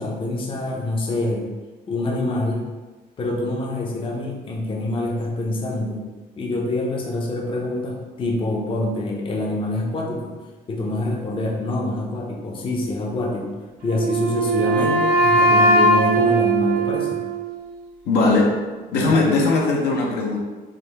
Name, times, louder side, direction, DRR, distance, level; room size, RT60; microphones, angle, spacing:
voice 1, 0.0-1.4 1.9-2.6 3.2-6.0 6.4-10.3 10.7-13.5 13.8-17.2 19.1-19.3, left 2 dB, 30° left, -1 dB, 0.6 m, -25 dB
Wind instrument woodwind instrument, 13.9-17.8, right 2 dB, 60° right, 0.8 m, -19 dB
voice 2, 18.1-18.6 18.9-20.4, left 3 dB, 80° left, -2 dB, 0.7 m, -19 dB
3.6 x 2.2 x 3.3 m, 1.3 s
cardioid pair, 110°, 17 cm